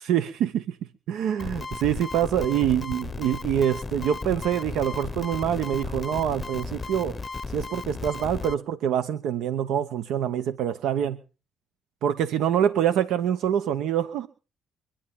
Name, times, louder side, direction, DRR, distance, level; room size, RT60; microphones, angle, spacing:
voice 1, 0.0-0.8 1.1-7.2 7.5-11.2 12.0-14.3, right 9 dB, 85° right, 12 dB, 0.9 m, -25 dB
sound 1, 1.4-8.5, left 4 dB, 30° left, 0.6 m, -35 dB
25.0 x 10.0 x 3.7 m, 0.34 s
cardioid pair, 90°, 0 cm